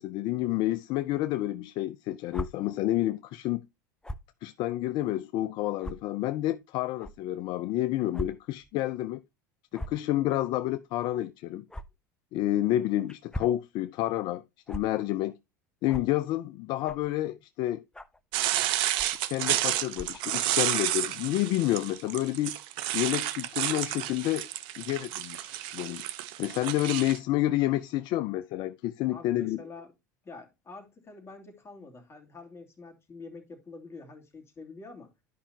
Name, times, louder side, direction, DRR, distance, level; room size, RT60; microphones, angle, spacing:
voice 1, 0.0-3.6 4.4-9.2 9.7-11.6 12.3-15.3 15.8-17.8 19.3-22.6 22.9-24.5 24.8-26.1 26.4-29.6, left 14 dB, 55° left, 0.5 m, -29 dB
sound 1, 2.3-2.5 4.0-4.3 5.0-5.1 5.8-5.9 7.0-7.1 8.1-8.3 8.6-8.7 9.7-10.0 11.7-11.8 13.1-13.6 14.7-14.8 15.9-16.1 16.8-17.1 17.9-18.2 18.9-19.2 19.9-20.2, equal, 10° left, 0.7 m, -37 dB
sound 2, 18.3-27.2, right 14 dB, 60° right, 0.8 m, -31 dB
voice 2, 29.1-29.9 30.2-35.1, left 3 dB, 25° left, 2.7 m, -46 dB
11.5 x 5.6 x 2.8 m
hypercardioid pair, 80°, 10 cm